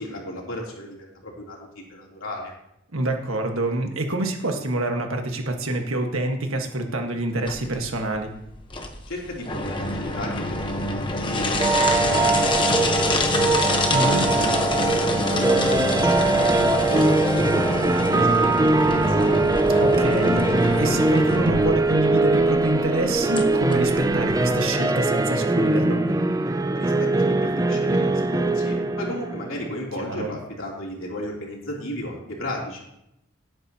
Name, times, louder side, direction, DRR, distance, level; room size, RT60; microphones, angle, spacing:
voice 1, 0.0-2.5 9.1-13.6 14.0-19.3 26.7-32.8, left 1 dB, 85° left, -3 dB, 3.3 m, -35 dB
voice 2, 2.9-8.3 13.9-14.2 19.8-26.0 30.0-30.3, right 1 dB, 90° right, 4 dB, 1.6 m, -26 dB
sound 1, 7.5-24.5, left 2 dB, 25° left, 1.0 m, -27 dB
sound 2, 11.6-29.7, right 2 dB, 15° right, 0.4 m, -21 dB
17.5 x 8.7 x 2.9 m, 0.82 s
head